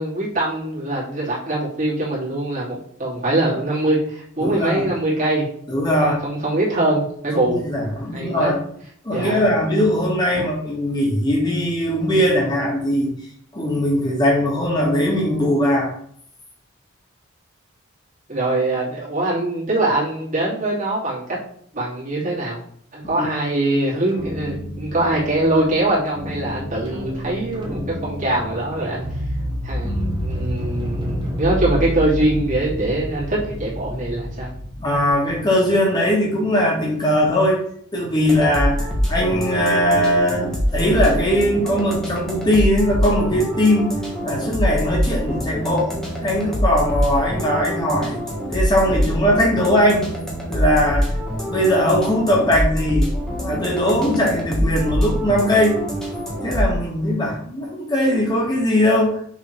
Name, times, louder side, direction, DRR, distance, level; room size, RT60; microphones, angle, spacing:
voice 1, 0.0-5.4 6.0-7.6 8.1-8.5 9.1-9.5 10.3-10.4 18.3-21.2 21.7-22.6 22.9-29.0 29.6-34.5, right 1 dB, 40° right, -6 dB, 2.7 m, -23 dB
voice 2, 4.4-4.8 5.7-6.2 7.3-8.6 9.0-13.1 13.5-15.9 23.2-23.3 34.8-37.6 37.9-43.9 44.2-45.9 46.2-48.2 48.5-50.1 50.5-53.1 53.4-55.8 56.4-59.2, equal, 20° left, -3 dB, 2.0 m, -20 dB
sound 1, 24.1-35.4, equal, 25° right, 1.3 m, -29 dB
sound 2, 38.2-56.7, equal, ahead, 1.6 m, -25 dB
6.2 x 3.7 x 4.6 m, 0.63 s
head